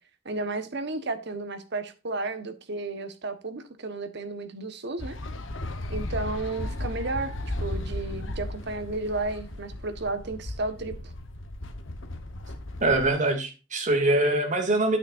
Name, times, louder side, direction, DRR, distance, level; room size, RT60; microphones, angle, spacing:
voice 1, 0.2-5.2 5.9-10.9, right 3 dB, 60° right, 1.3 m, -33 dB
sound 1, 5.0-13.1, left 1 dB, 80° left, 1.2 m, -35 dB
voice 2, 12.8-15.0, right 2 dB, 40° right, 2.5 m, -23 dB
9.5 x 8.5 x 2.6 m
head